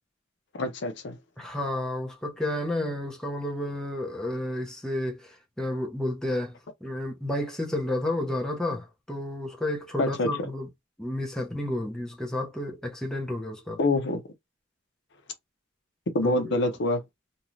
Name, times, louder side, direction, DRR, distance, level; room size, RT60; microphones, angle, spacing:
voice 1, 0.5-1.2 10.0-10.5 13.8-14.2 16.1-17.0, left 2 dB, 65° left, 0.6 m, -26 dB
voice 2, 1.4-6.5 6.8-10.7 11.0-13.8 16.2-16.7, left 1 dB, 5° left, 0.7 m, -31 dB
2.6 x 2.2 x 3.1 m
head